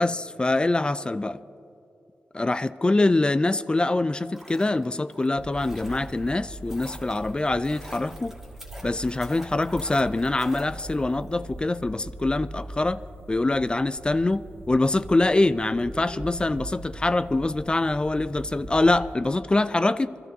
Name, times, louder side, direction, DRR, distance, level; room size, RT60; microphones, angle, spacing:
voice 1, 0.0-1.4 2.3-8.4 8.8-13.0 13.3-20.2, left 2 dB, 25° left, 0.4 m, -24 dB
sound 1, 4.1-11.3 11.6-11.7, equal, 5° right, 1.8 m, -45 dB
sound 2, 5.4-19.2, right 1 dB, 70° right, 1.1 m, -41 dB
27.0 x 13.0 x 2.7 m
cardioid pair, 80°, 4 cm